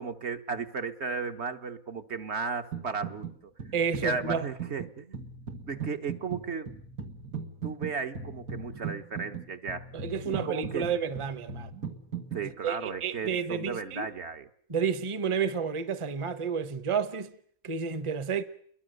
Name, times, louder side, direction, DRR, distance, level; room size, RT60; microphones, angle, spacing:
voice 1, 0.0-3.5 4.0-5.2 5.7-6.7 7.6-9.9 10.2-10.9 12.3-14.5, right 5 dB, 55° right, 1.5 m, -35 dB
sound 1, 2.7-3.3 3.6-12.5, right 6 dB, 90° right, 2.6 m, -38 dB
voice 2, 3.7-4.4 9.9-11.7 12.4-14.0 14.7-17.3 17.6-18.4, right 6 dB, 25° right, 1.0 m, -31 dB
29.5 x 22.5 x 6.6 m
omnidirectional pair, 1.5 m